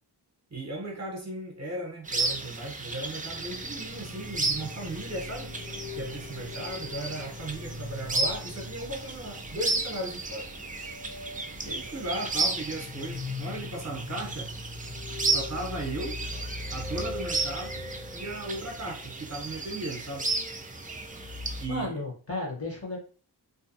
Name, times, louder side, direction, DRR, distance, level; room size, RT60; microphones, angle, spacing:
voice 1, 0.5-5.6 6.0-10.5 11.6-14.5 15.3-16.2 16.7-20.3 21.6-22.0, right 2 dB, 40° right, 0.8 m, -36 dB
sound 1, 2.0-21.7, right 3 dB, 20° right, 0.3 m, -34 dB
sound 2, 3.2-21.9, left 2 dB, 10° left, 0.7 m, -42 dB
sound 3, 3.4-13.8, left 3 dB, 75° left, 0.6 m, -50 dB
voice 2, 21.7-23.0, left 3 dB, 35° left, 1.0 m, -33 dB
2.6 x 2.2 x 2.5 m
wide cardioid pair, 65°, 43 cm